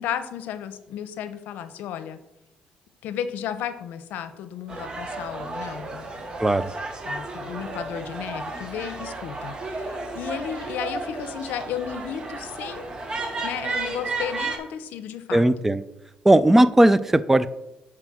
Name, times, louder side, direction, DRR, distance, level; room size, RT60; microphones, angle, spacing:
voice 1, 0.0-2.2 3.0-6.4 7.0-12.9 13.4-15.5, left 9 dB, 85° left, 12 dB, 0.7 m, -34 dB
sound 1, 4.7-14.6, right 3 dB, 30° right, 1.3 m, -33 dB
voice 2, 15.3-15.8 16.2-17.5, right 1 dB, 10° right, 15 dB, 0.4 m, -17 dB
7.6 x 4.9 x 6.2 m, 0.90 s
cardioid pair, 130°, 3 cm